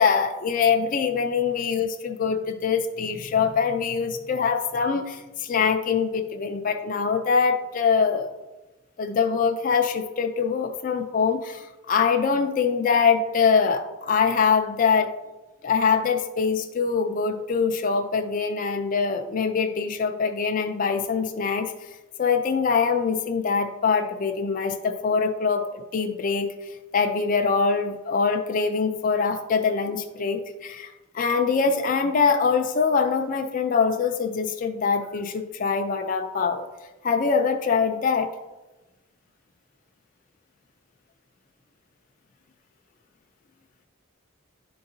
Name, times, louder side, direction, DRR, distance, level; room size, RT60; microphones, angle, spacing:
voice 1, 0.0-8.3 9.0-15.1 15.6-21.7 22.2-36.7 37.0-38.3, left 5 dB, 40° left, 4 dB, 0.4 m, -23 dB
11.0 x 3.8 x 2.7 m, 1.1 s
head